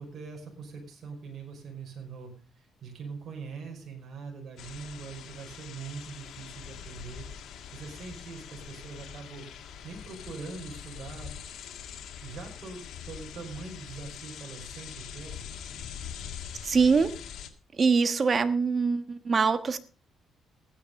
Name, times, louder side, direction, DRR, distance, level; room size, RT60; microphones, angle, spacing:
voice 1, 0.0-7.3 7.7-9.5 9.8-11.3 12.2-15.4, right 5 dB, 55° right, 2 dB, 5.3 m, -42 dB
sound 1, 4.6-17.5, left 8 dB, 75° left, 1.8 m, -43 dB
voice 2, 16.6-17.1 17.8-19.8, right 5 dB, 40° right, 12 dB, 1.4 m, -23 dB
15.5 x 9.8 x 5.3 m, 0.38 s
cardioid pair, 90°, 0 cm